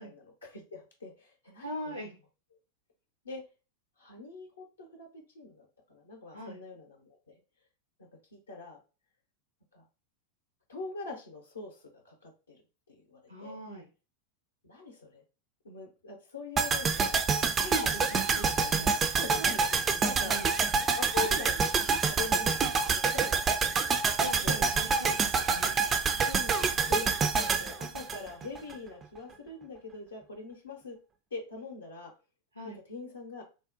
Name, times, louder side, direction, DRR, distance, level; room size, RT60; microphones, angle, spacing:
voice 1, 0.0-1.9 3.2-3.4 4.0-7.3 8.3-8.8 9.7-9.9 10.7-12.6 12.9-13.5 14.6-15.2 15.6-17.3 17.6-18.3 19.2-20.3 21.0-21.7 22.1-24.7 26.3-27.1 27.3-31.0 31.3-32.1 32.9-33.4, left 3 dB, 70° left, 0 dB, 0.6 m, -43 dB
voice 2, 1.6-2.2 6.3-6.6 13.3-13.9 17.6-19.3 20.2-20.6 24.2-25.8 32.5-32.8, equal, 85° right, 0 dB, 0.7 m, -41 dB
sound 1, 16.6-28.7 29.0-29.1, right 5 dB, 20° right, 0.3 m, -27 dB
3.6 x 2.0 x 2.5 m, 0.32 s
figure-of-eight pair, 90°, 0 cm